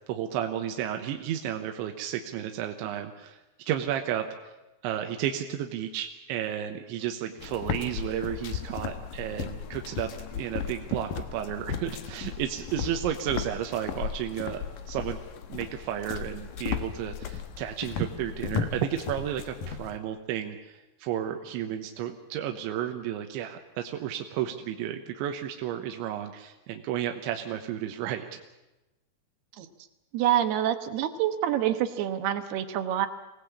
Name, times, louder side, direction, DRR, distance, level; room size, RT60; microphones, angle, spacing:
voice 1, 0.1-3.4 3.7-4.5 4.8-15.2 15.5-28.4, right 10 dB, 85° right, 5 dB, 3.5 m, -32 dB
sound 1, 7.4-20.0, left 7 dB, 65° left, 2.3 m, -36 dB
voice 2, 30.1-33.1, right 11 dB, 70° right, 9 dB, 2.9 m, -27 dB
25.0 x 18.5 x 8.4 m, 1.0 s
omnidirectional pair, 5.3 m